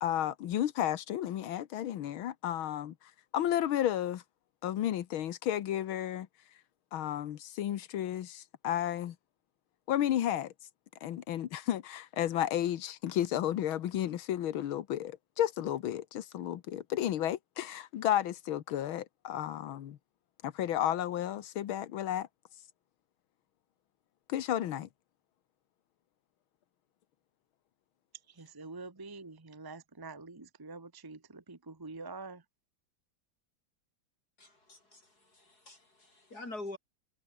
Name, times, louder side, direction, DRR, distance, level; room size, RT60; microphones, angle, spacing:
voice 1, 0.0-3.0 3.3-4.2 4.6-6.3 6.9-9.2 9.9-10.5 11.0-20.0 20.4-22.3 24.3-24.9, left 11 dB, 90° left, 1.9 m, -32 dB
voice 2, 28.3-32.4, right 3 dB, 20° right, 0.5 m, -46 dB
voice 3, 34.4-36.8, left 2 dB, 50° left, 8.1 m, -46 dB
omnidirectional pair, 2.2 m